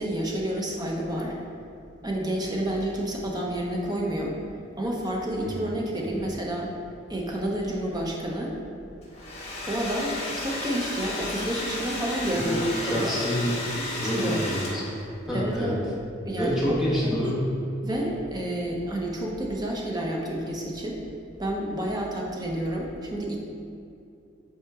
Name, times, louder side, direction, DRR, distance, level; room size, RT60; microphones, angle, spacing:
voice 1, 0.0-1.3 2.0-4.4 4.8-6.7 7.1-8.5 9.7-13.1 14.0-14.4 15.3-15.8 16.2-16.8 17.0-17.2 17.8-21.0 21.4-23.4, right 1 dB, 20° right, -2 dB, 0.9 m, -29 dB
Domestic sounds home sounds, 9.0-15.1, left 2 dB, 35° left, 1.4 m, -33 dB
sound 1, 11.9-15.9, right 1 dB, 80° right, 1.0 m, -42 dB
voice 2, 12.4-13.5 13.9-15.0 15.3-15.7 16.4-17.5, equal, 5° right, -8 dB, 1.5 m, -27 dB
8.3 x 4.4 x 3.6 m, 2.6 s
head